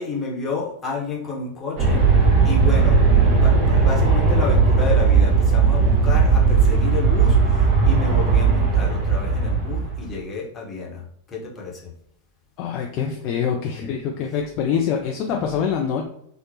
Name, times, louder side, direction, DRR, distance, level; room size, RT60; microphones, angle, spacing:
voice 1, 0.0-2.0 2.4-11.9, left 3 dB, 20° left, -2 dB, 0.9 m, -30 dB
Aircraft, 1.8-10.1, right 5 dB, 40° right, 0.9 m, -17 dB
voice 2, 12.6-16.1, left 7 dB, 40° left, 1 dB, 0.3 m, -25 dB
2.8 x 2.0 x 2.7 m, 0.73 s
figure-of-eight pair, 90°, 0 cm